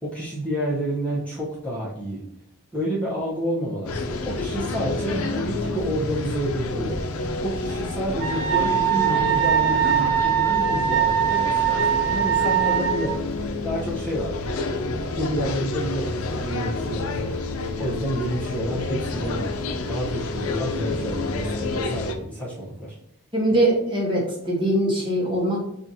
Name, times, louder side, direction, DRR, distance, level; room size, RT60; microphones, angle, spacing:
voice 1, 0.0-2.2 2.7-7.0 7.4-13.2 13.6-14.4 15.2-17.4 17.8-22.9, right 1 dB, 5° left, -7 dB, 0.7 m, -29 dB
sound 1, 3.9-22.2, left 3 dB, 80° left, 0.5 m, -29 dB
Wind instrument woodwind instrument, 8.2-13.1, right 10 dB, 50° right, 0.9 m, -22 dB
voice 2, 23.3-25.6, right 1 dB, 20° right, -2 dB, 0.9 m, -22 dB
5.6 x 2.4 x 2.7 m, 0.78 s
head